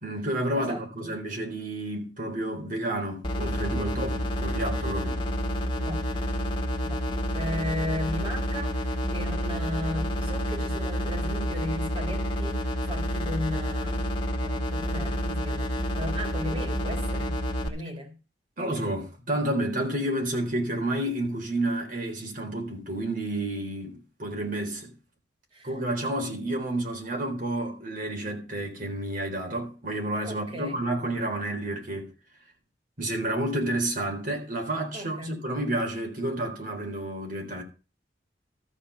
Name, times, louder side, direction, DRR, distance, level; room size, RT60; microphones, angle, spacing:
voice 1, 0.0-5.2 18.6-24.9 25.6-32.1 33.0-37.6, right 1 dB, 50° right, 3.9 m, -30 dB
voice 2, 0.6-1.1 5.8-6.0 6.8-7.0 7.3-14.0 14.4-17.4 17.6-18.1 25.5-25.7 30.3-30.8 34.9-35.4, left 1 dB, 30° right, 3.9 m, -36 dB
sound 1, 3.2-17.7, equal, 30° left, 2.2 m, -29 dB
13.5 x 6.0 x 6.9 m
head